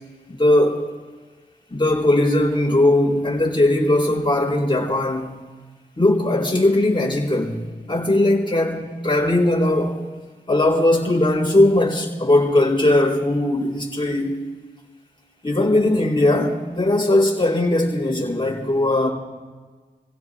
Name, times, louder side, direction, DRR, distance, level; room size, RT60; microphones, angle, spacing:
voice 1, 0.3-0.8 1.7-5.3 6.0-7.6 7.9-10.0 10.5-14.5 15.4-19.1, left 1 dB, 30° left, -3 dB, 4.0 m, -19 dB
29.5 x 16.5 x 2.3 m, 1.4 s
cardioid pair, 40°, 17 cm